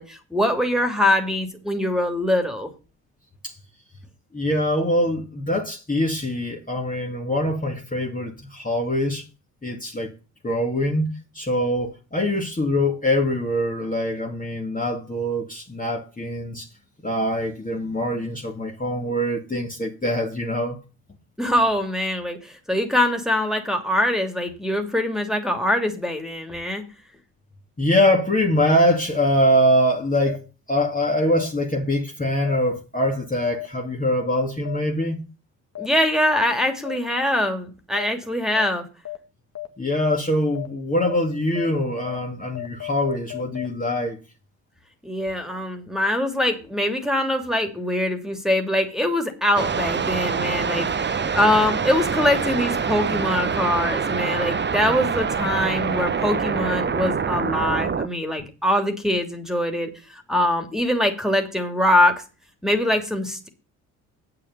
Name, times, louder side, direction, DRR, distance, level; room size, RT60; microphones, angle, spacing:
voice 1, 0.0-2.7 21.4-26.8 35.8-38.8 45.0-50.9 51.3-62.2 62.6-63.5, left 1 dB, ahead, 2.9 m, -23 dB
voice 2, 4.3-9.2 9.6-10.1 10.4-11.1 11.3-16.7 17.0-20.8 27.8-30.4 30.7-35.2 39.8-44.2, left 1 dB, 20° left, 2.3 m, -23 dB
sound 1, 28.0-28.2 29.1-29.3 30.2-30.4 31.3-31.5 32.4-32.6 33.5-33.7 34.6-34.8 35.7-35.9 36.8-37.0 37.9-38.1 38.5-38.7 39.0-39.2 39.5-39.7 40.0-40.2 40.5-40.7 41.0-41.2 41.5-41.7 42.0-42.2 42.5-43.7, left 16 dB, 35° left, 1.9 m, -33 dB
sound 2, 49.6-58.1, right 6 dB, 25° right, 0.9 m, -25 dB
8.9 x 6.7 x 6.8 m
hypercardioid pair, 55°, 45 cm